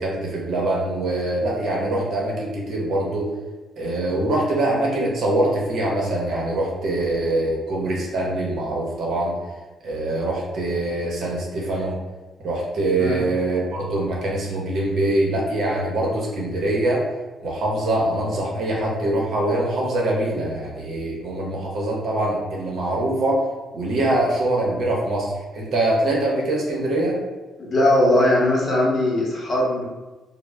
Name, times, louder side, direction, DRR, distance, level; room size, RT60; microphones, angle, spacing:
voice 1, 0.0-3.3 3.8-9.3 9.8-11.9 12.4-17.0 17.4-23.4 23.7-27.2, right 1 dB, 65° right, -2 dB, 0.7 m, -23 dB
voice 2, 27.6-29.9, left 1 dB, 45° left, -4 dB, 0.8 m, -19 dB
2.0 x 2.0 x 3.3 m, 1.2 s
cardioid pair, 90°, 0 cm